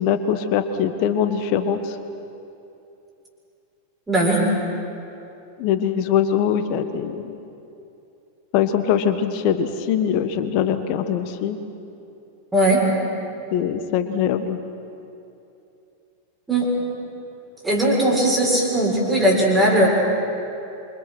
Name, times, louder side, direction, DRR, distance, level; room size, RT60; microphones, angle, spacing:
voice 1, 0.0-2.0 5.6-7.3 8.5-11.6 13.5-14.6, left 8 dB, 45° left, 10 dB, 1.5 m, -22 dB
voice 2, 4.1-4.5 12.5-12.8 16.5-16.7 17.6-19.9, right 1 dB, 10° right, -4 dB, 7.0 m, -18 dB
28.0 x 26.0 x 6.1 m, 2.8 s
figure-of-eight pair, 90°, 0 cm